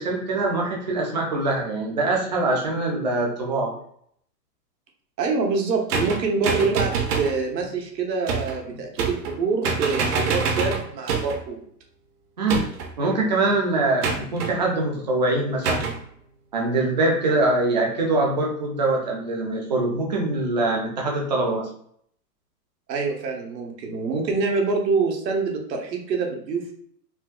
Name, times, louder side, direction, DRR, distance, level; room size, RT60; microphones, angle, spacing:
voice 1, 0.0-3.8 12.4-12.7 13.0-15.9 16.5-21.7, right 2 dB, 30° right, -1 dB, 0.4 m, -23 dB
voice 2, 5.2-11.6 22.9-26.7, right 4 dB, 85° right, 1 dB, 1.2 m, -25 dB
sound 1, 5.9-7.4 8.3-8.6 9.0-9.4 9.6-11.4 12.5-13.0 14.0-14.5 15.6-16.0, right 5 dB, 65° right, 0.8 m, -26 dB
4.4 x 2.2 x 2.5 m, 0.64 s
hypercardioid pair, 165°, 49 cm